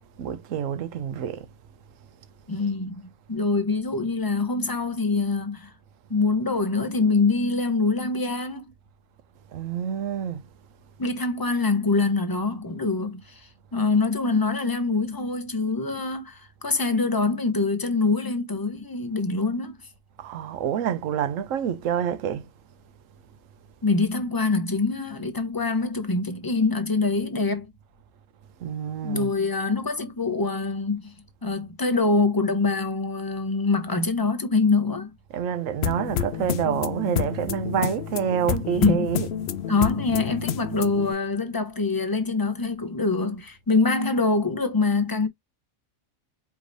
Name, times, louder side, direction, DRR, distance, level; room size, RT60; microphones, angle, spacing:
voice 1, 0.0-1.5 9.5-10.4 20.2-22.5 28.6-29.3 35.3-39.3, right 8 dB, 75° right, 1.1 m, -27 dB
voice 2, 2.5-5.7 6.1-8.7 11.0-19.8 23.8-27.7 29.0-31.1 31.4-35.1 38.8-39.0 39.7-45.3, left 3 dB, 20° left, 0.7 m, -24 dB
sound 1, 35.8-41.1, left 9 dB, 60° left, 0.7 m, -29 dB
4.7 x 3.5 x 2.6 m
omnidirectional pair, 1.4 m